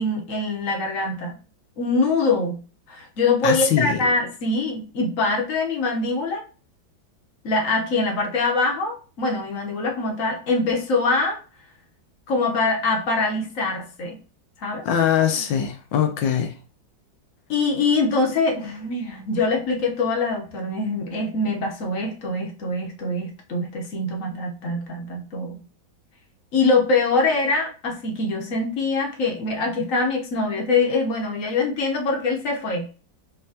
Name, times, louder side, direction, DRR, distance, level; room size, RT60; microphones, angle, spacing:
voice 1, 0.0-1.4 1.8-2.6 2.9-6.4 7.4-11.4 12.3-14.2 14.6-14.8 17.5-25.6 26.5-32.9, left 3 dB, 50° left, 1.2 m, -23 dB
voice 2, 3.4-4.0 14.8-16.5, left 9 dB, 75° left, 1.5 m, -22 dB
5.5 x 2.9 x 2.8 m
omnidirectional pair, 2.1 m